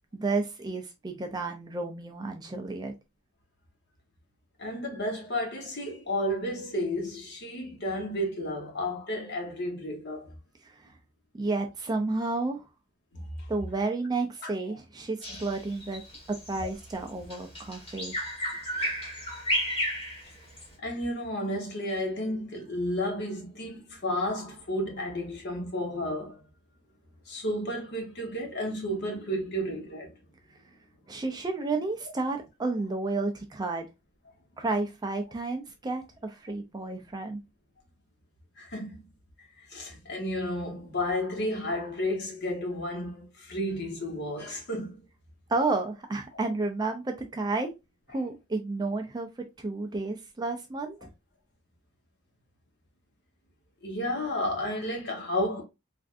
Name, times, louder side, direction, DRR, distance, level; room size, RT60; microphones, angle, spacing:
voice 1, 0.1-2.9 10.6-10.9 11.3-12.6 13.5-16.0 16.3-18.1 31.1-33.9 34.6-37.4 45.5-47.7 48.1-49.3 49.6-51.1, right 3 dB, 20° right, 0.4 m, -31 dB
voice 2, 4.6-10.3 13.4-13.5 14.4-14.5 15.3-15.4 18.7-19.0 20.8-26.4 27.3-30.1 38.6-39.0 39.7-45.0 53.8-55.6, left 1 dB, 50° left, 1.0 m, -32 dB
Bird vocalization bird call bird song, 15.2-20.7, equal, 25° left, 1.3 m, -33 dB
3.4 x 2.5 x 2.4 m
head